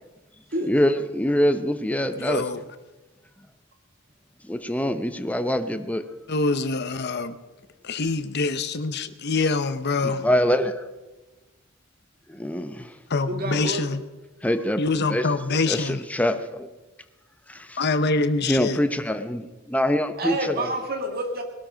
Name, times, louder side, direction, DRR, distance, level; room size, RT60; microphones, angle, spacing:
voice 1, 0.6-2.5 4.4-6.1 10.0-10.9 12.3-13.0 14.4-14.8 15.1-16.7 17.5-17.8 18.4-20.7, equal, 5° left, 8 dB, 0.8 m, -25 dB
voice 2, 2.1-2.6 6.3-7.4 7.8-10.2 13.1-14.0 14.8-16.0 17.8-18.8, left 3 dB, 55° left, 11 dB, 0.8 m, -25 dB
voice 3, 13.3-13.9 20.2-21.4, right 1 dB, 50° right, 4 dB, 2.0 m, -28 dB
20.0 x 12.5 x 5.1 m, 1.1 s
head